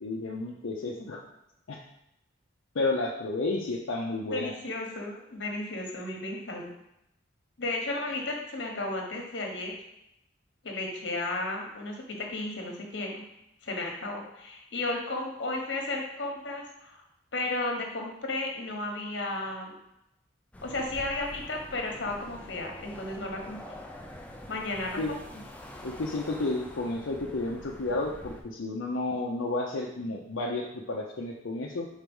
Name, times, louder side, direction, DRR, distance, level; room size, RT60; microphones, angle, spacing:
voice 1, 0.0-1.2 1.7-1.8 2.7-4.5 25.0-25.1 25.8-31.9, left 2 dB, 80° left, -3 dB, 0.6 m, -31 dB
voice 2, 4.3-6.7 7.6-9.7 10.6-13.2 13.6-17.0 17.3-19.7 20.6-23.6 24.5-25.4, left 2 dB, 65° left, 1 dB, 1.2 m, -34 dB
sound 1, 20.5-28.4, left 1 dB, 5° left, 0.5 m, -45 dB
4.6 x 4.0 x 5.4 m, 0.84 s
head